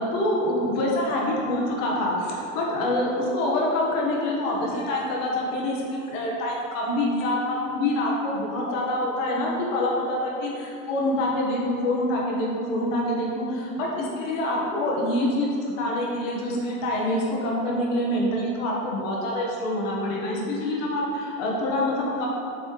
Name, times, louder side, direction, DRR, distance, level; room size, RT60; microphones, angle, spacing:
voice 1, 0.0-22.3, left 1 dB, 75° left, -3 dB, 1.4 m, -26 dB
7.3 x 4.2 x 3.1 m, 2.6 s
supercardioid pair, 165°, 40 cm